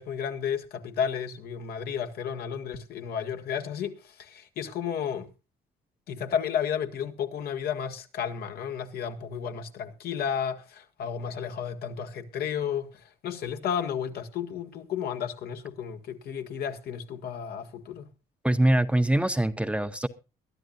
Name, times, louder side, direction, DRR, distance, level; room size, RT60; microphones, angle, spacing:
voice 1, 0.0-5.3 6.1-18.1, left 8 dB, 65° left, 1.7 m, -32 dB
voice 2, 18.4-20.1, right 1 dB, 5° right, 0.6 m, -23 dB
22.0 x 12.0 x 2.5 m
cardioid pair, 110°, 17 cm